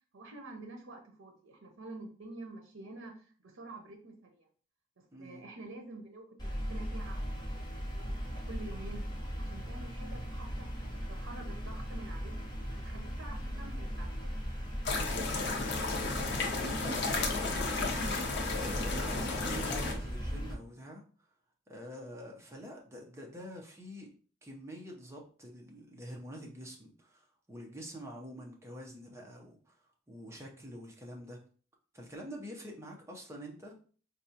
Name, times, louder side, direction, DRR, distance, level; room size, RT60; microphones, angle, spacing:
voice 1, 0.1-4.5 5.0-9.0 9.4-12.3 12.8-14.4, right 2 dB, 85° right, 3 dB, 0.7 m, -48 dB
voice 2, 5.1-5.4 15.1-15.7 16.5-18.0 18.5-21.0 21.7-24.1 24.4-31.4 31.9-33.8, equal, 15° right, -1 dB, 0.6 m, -46 dB
sound 1, 6.4-20.5, equal, 20° left, 0.9 m, -38 dB
sound 2, 14.8-19.9, left 3 dB, 55° left, 0.7 m, -33 dB
4.0 x 2.3 x 2.8 m, 0.42 s
head